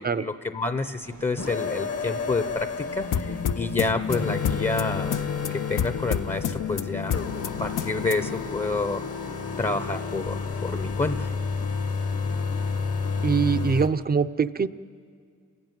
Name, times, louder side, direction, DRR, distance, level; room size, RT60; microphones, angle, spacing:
voice 1, 0.0-7.2 7.6-9.0 9.6-11.3, left 3 dB, 20° left, 10 dB, 0.6 m, -29 dB
sound 1, 1.0-14.1, right 4 dB, 70° right, 1.3 m, -49 dB
sound 2, 1.4-13.9, left 5 dB, 50° left, 0.9 m, -31 dB
sound 3, 3.1-8.4, left 8 dB, 80° left, 0.6 m, -30 dB
voice 2, 13.2-14.7, right 6 dB, 30° right, 13 dB, 0.5 m, -23 dB
30.0 x 11.0 x 9.1 m, 2.2 s
wide cardioid pair, 80°, 31 cm